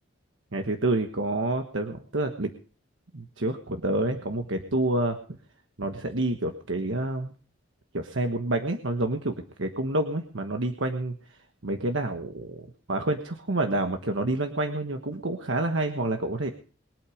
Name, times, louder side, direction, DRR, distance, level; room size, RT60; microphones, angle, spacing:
voice 1, 0.5-2.5 3.1-5.2 5.8-7.3 7.9-11.1 11.6-16.5, right 2 dB, 70° right, 5 dB, 1.4 m, -28 dB
22.0 x 8.6 x 5.0 m, 0.40 s
head